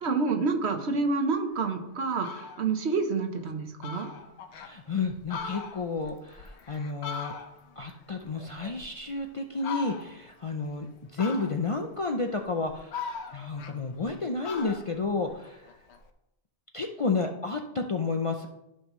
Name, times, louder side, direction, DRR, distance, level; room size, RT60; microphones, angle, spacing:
voice 1, 0.0-4.1, right 4 dB, 70° right, 5 dB, 1.3 m, -28 dB
Fowl, 1.6-1.7 2.1-2.7 3.1-3.2 3.5-3.6 3.8-4.7 5.1-7.8 8.1-9.2 9.6-10.3 11.2-11.8 12.4-14.1 14.4-16.0, left 5 dB, 75° left, 1.0 m, -40 dB
voice 2, 4.6-7.4 7.8-13.0 13.3-15.6 16.7-18.5, left 3 dB, 40° left, 3 dB, 0.5 m, -31 dB
13.5 x 5.6 x 3.1 m, 0.88 s
omnidirectional pair, 1.2 m